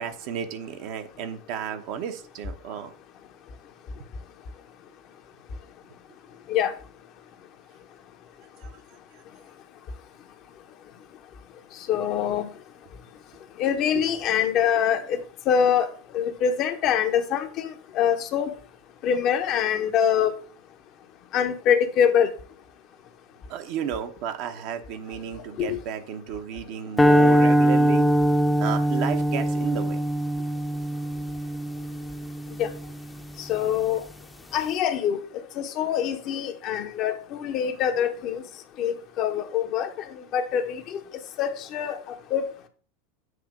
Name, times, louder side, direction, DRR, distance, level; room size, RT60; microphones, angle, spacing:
voice 1, 0.0-2.9 8.6-8.7 9.1-9.2 13.9-14.0 23.5-28.1 28.6-30.0, right 8 dB, 50° right, 0.9 m, -33 dB
voice 2, 11.9-12.5 13.6-15.2 15.5-15.9 16.1-18.5 19.0-20.3 21.3-22.3 25.6-25.8 32.6-32.7 33.4-34.0 34.5-35.2 35.6-38.4 38.8-41.0 41.4-42.0 42.3-42.5, left 8 dB, 45° left, 0.9 m, -24 dB
sound 1, 27.0-33.3, equal, 5° left, 0.7 m, -22 dB
7.8 x 2.9 x 5.0 m
figure-of-eight pair, 85°, 0 cm